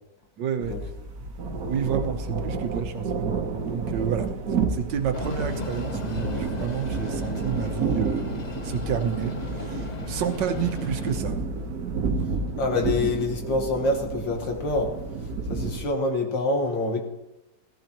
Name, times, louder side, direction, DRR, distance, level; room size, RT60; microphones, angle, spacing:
voice 1, 0.4-0.8 1.7-3.3 3.6-4.3 4.7-8.4 8.6-11.4, right 7 dB, 75° right, 6 dB, 1.6 m, -30 dB
sound 1, 0.6-15.8, right 4 dB, 55° right, 1.4 m, -30 dB
Train, 5.1-11.2, left 4 dB, 55° left, 0.4 m, -36 dB
voice 2, 12.6-14.9 15.5-17.0, left 2 dB, 80° left, 2 dB, 2.4 m, -26 dB
16.0 x 14.5 x 3.0 m, 0.95 s
omnidirectional pair, 2.0 m